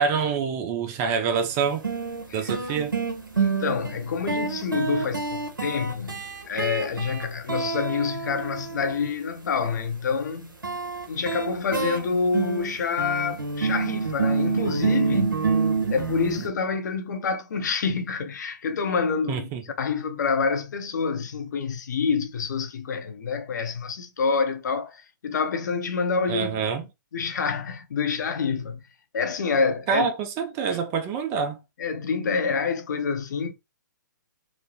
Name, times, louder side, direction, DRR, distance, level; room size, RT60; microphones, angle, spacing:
voice 1, 0.0-1.9 2.3-2.9 19.3-19.6 26.3-26.8 29.9-31.6, right 6 dB, 25° right, 0.4 m, -26 dB
sound 1, 1.4-1.5 1.8-9.1 10.6-16.5, right 5 dB, 90° right, 0.8 m, -27 dB
voice 2, 3.4-6.2 6.5-10.5 11.1-15.4 15.9-19.5 19.8-26.6 27.1-28.8 29.1-30.1 30.7-30.8 31.8-33.5, left 5 dB, 60° left, 0.6 m, -27 dB
3.0 x 2.0 x 2.7 m
figure-of-eight pair, 125°, 11 cm